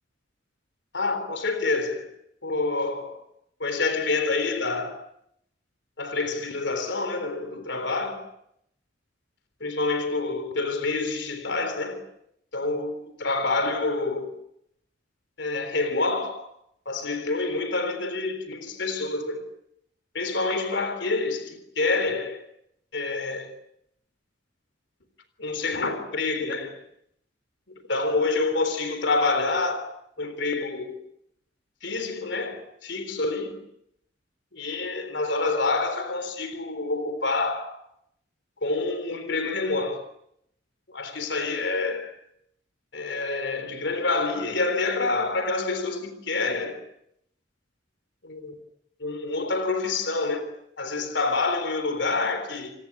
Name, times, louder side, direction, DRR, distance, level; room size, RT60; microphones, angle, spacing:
voice 1, 0.9-2.1 2.4-3.2 3.6-4.9 6.0-8.3 9.6-12.0 12.5-14.3 15.4-16.4 16.9-19.4 20.1-22.4 22.9-23.5 25.4-26.8 27.9-29.9 30.2-31.0 31.8-33.6 34.5-37.8 38.6-40.0 40.9-42.1 42.9-46.8 48.2-48.5 49.0-50.5 50.8-52.7, left 3 dB, 65° left, 3.8 m, -27 dB
29.0 x 19.0 x 9.9 m
head